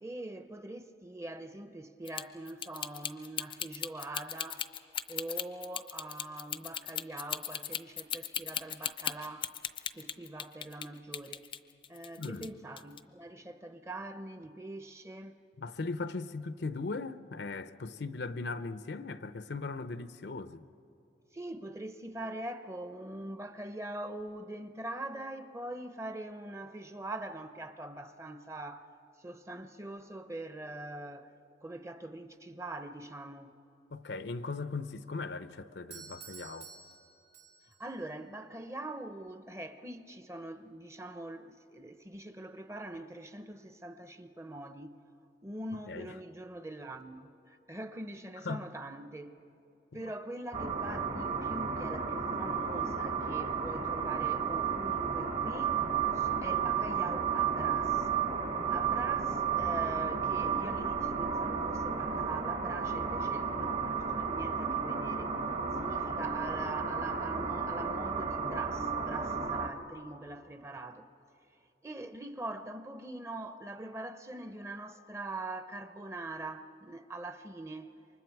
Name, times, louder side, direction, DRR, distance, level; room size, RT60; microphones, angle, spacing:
voice 1, 0.0-4.7 5.1-9.5 9.9-11.5 11.9-15.4 21.3-28.9 29.2-31.3 31.6-33.6 37.8-45.0 45.4-49.3 49.9-55.8 56.1-58.1 58.7-65.3 65.8-71.1 71.8-77.9, right 2 dB, 15° right, 0.7 m, -43 dB
sound 1, 2.1-10.9 11.1-12.5 12.8-13.0, left 9 dB, 30° left, 0.5 m, -37 dB
voice 2, 12.2-12.5 15.6-20.7 33.9-36.7 45.9-46.1 48.4-48.6, left 3 dB, 70° left, 0.6 m, -38 dB
Doorbell, 35.9-37.9, right 7 dB, 80° right, 2.5 m, -51 dB
sound 2, 50.5-69.7, right 6 dB, 45° right, 1.2 m, -32 dB
28.0 x 24.5 x 4.7 m
head